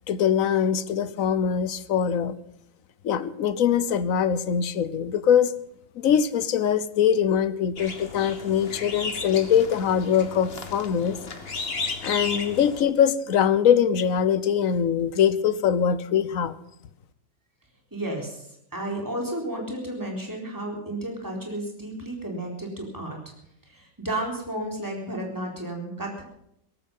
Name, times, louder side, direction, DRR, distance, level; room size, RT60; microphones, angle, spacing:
voice 1, 0.1-2.3 3.0-5.5 6.0-11.2 12.0-16.6, left 8 dB, 55° left, 15 dB, 1.0 m, -22 dB
sound 1, 7.8-12.8, left 4 dB, 35° left, 1.6 m, -34 dB
voice 2, 17.9-23.2 23.6-26.2, right 1 dB, 10° right, 0 dB, 4.1 m, -32 dB
17.5 x 15.0 x 5.6 m, 0.73 s
omnidirectional pair, 2.1 m